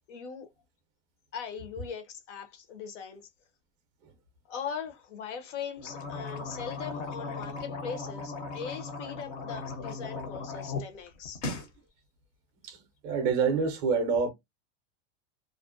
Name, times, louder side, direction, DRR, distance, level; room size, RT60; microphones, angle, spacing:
voice 1, 0.1-0.5 1.3-3.2 4.5-11.4, left 7 dB, 80° left, 0.8 m, -40 dB
sound 1, 5.8-10.8 11.2-11.7, left 3 dB, 35° left, 0.5 m, -37 dB
voice 2, 13.0-14.3, right 5 dB, 20° right, 0.4 m, -26 dB
2.4 x 2.0 x 2.4 m
supercardioid pair, 175°, 36 cm